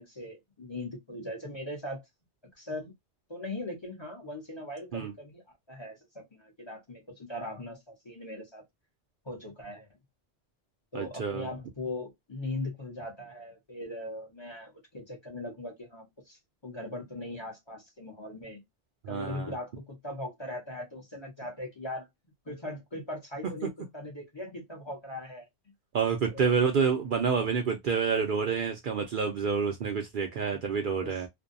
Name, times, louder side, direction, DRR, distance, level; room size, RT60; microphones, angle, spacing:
voice 1, 0.0-2.0 2.6-2.9 3.3-5.4 5.7-8.6 9.2-9.9 10.9-18.6 19.1-22.1 22.5-25.5 26.3-26.7 31.0-31.2, left 1 dB, 30° left, 0.8 m, -40 dB
voice 2, 10.9-11.5 19.0-19.5 23.4-23.5 25.9-31.3, right 6 dB, 60° right, 0.6 m, -28 dB
2.6 x 2.2 x 2.5 m
omnidirectional pair, 1.1 m